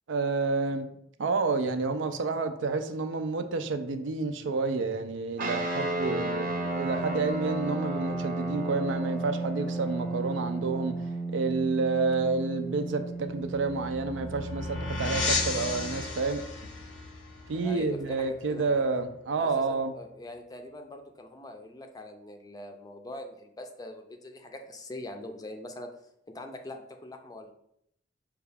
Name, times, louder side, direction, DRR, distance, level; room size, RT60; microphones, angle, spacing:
voice 1, 0.1-0.9 1.2-11.0 11.3-16.4 17.5-19.9, right 4 dB, 85° right, 0.4 m, -29 dB
sound 1, 5.4-16.0, right 2 dB, 50° right, 0.8 m, -33 dB
sound 2, 13.3-18.7, left 3 dB, 90° left, 0.7 m, -34 dB
voice 2, 17.5-18.8 19.4-25.9 26.3-27.5, left 1 dB, 20° left, 0.4 m, -43 dB
5.5 x 2.3 x 3.4 m
head